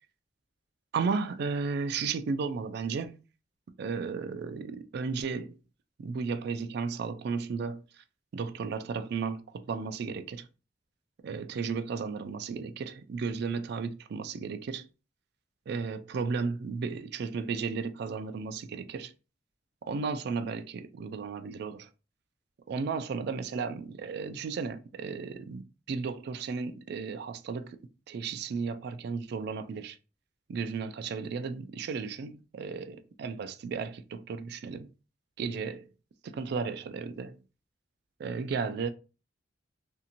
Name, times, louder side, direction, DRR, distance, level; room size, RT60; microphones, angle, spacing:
voice 1, 0.9-3.1 3.8-5.5 6.0-8.0 8.3-10.5 11.2-14.9 15.7-19.1 19.9-21.9 22.7-25.6 25.9-27.8 28.1-30.0 30.5-34.9 35.4-35.9 36.2-37.4 38.2-38.9, right 5 dB, 60° right, 0.3 m, -34 dB
2.8 x 2.6 x 2.5 m
head